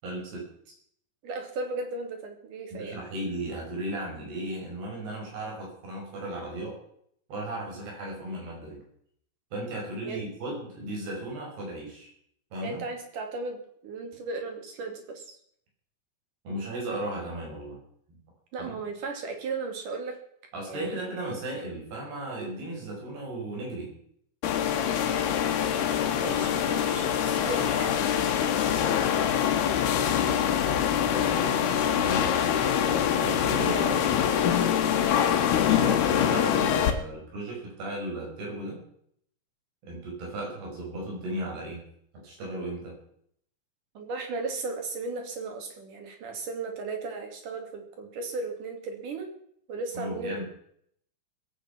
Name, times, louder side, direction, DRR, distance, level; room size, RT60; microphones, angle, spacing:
voice 1, 0.0-0.7 2.7-6.8 7.3-8.8 9.5-12.1 12.5-12.8 16.4-17.8 18.1-18.2 18.6-18.8 20.5-23.9 28.6-28.7 29.0-29.3 31.0-32.3 33.2-34.1 35.7-38.8 39.8-41.8 42.2-43.0 49.9-50.4, right 1 dB, 90° right, -1 dB, 7.7 m, -36 dB
voice 2, 1.2-3.0 10.0-10.3 12.6-15.3 18.5-20.2 20.7-21.0 26.2-28.0 33.5-34.5 35.7-36.3 44.0-49.3 49.7-50.4, right 3 dB, 55° right, 4 dB, 4.0 m, -36 dB
sound 1, 24.4-36.9, left 9 dB, 85° left, 3.4 m, -24 dB
21.5 x 8.8 x 6.0 m, 0.67 s
omnidirectional pair, 4.4 m